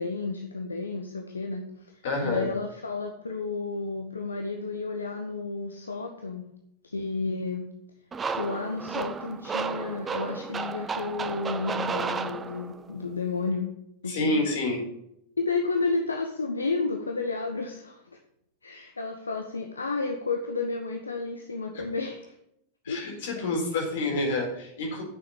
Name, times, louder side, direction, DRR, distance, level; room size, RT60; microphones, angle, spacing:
voice 1, 0.0-6.4 6.8-7.7 8.3-13.7 14.0-14.4 15.4-18.0 18.6-22.3 22.9-23.0, left 3 dB, 75° left, 3 dB, 1.1 m, -31 dB
voice 2, 2.0-2.5 14.1-14.8 21.7-21.8 22.8-25.0, left 2 dB, 55° left, 0 dB, 4.3 m, -28 dB
sound 1, 8.1-12.9, right 5 dB, 20° right, 0.7 m, -33 dB
9.9 x 7.0 x 7.2 m, 0.77 s
figure-of-eight pair, 90°, 0 cm